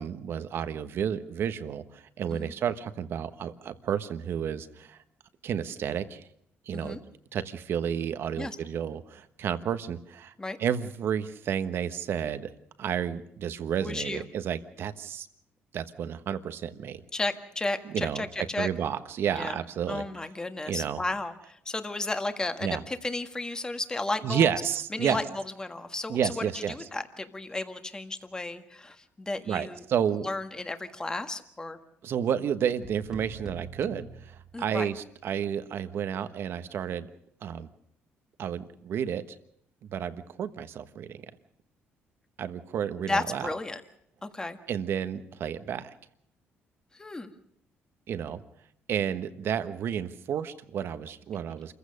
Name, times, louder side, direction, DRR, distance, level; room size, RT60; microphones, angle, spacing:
voice 1, 0.0-5.0 5.4-6.2 6.7-7.0 7.3-10.3 10.6-12.5 12.8-15.3 15.7-17.0 17.9-18.2 18.6-20.0 20.7-21.0 22.6-22.8 24.2-25.2 26.1-26.9 29.5-30.3 32.0-37.1 37.4-37.7 38.4-39.2 39.9-41.2 42.4-43.5 44.7-45.9 48.1-48.4 48.9-51.7, right 8 dB, 60° right, 12 dB, 1.3 m, -31 dB
voice 2, 13.8-14.2 17.1-18.7 19.3-19.6 19.9-24.5 24.9-25.2 25.6-29.8 30.2-31.8 34.5-34.9 42.9-43.8 44.2-44.6 47.0-47.3, left 2 dB, 15° left, 8 dB, 1.7 m, -33 dB
sound 1, 32.8-35.1, right 3 dB, 10° right, 2.2 m, -45 dB
27.5 x 15.5 x 6.5 m, 0.72 s
cardioid pair, 110°, 4 cm